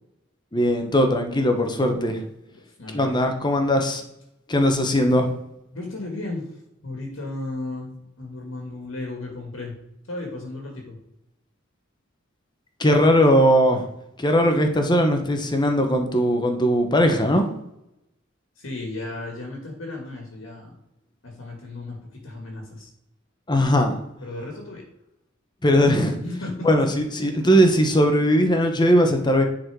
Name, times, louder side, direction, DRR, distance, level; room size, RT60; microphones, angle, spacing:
voice 1, 0.5-2.2 2.9-4.0 4.5-5.3 12.8-13.9 14.2-17.5 23.5-23.9 25.6-26.2 26.6-29.5, equal, 20° left, 5 dB, 1.1 m, -19 dB
voice 2, 2.8-3.2 5.7-6.5 6.8-9.7 10.1-11.0 18.6-20.8 21.2-22.9 24.2-24.8 26.2-26.8, left 2 dB, 85° left, 0 dB, 1.7 m, -34 dB
9.6 x 4.2 x 4.7 m, 0.84 s
head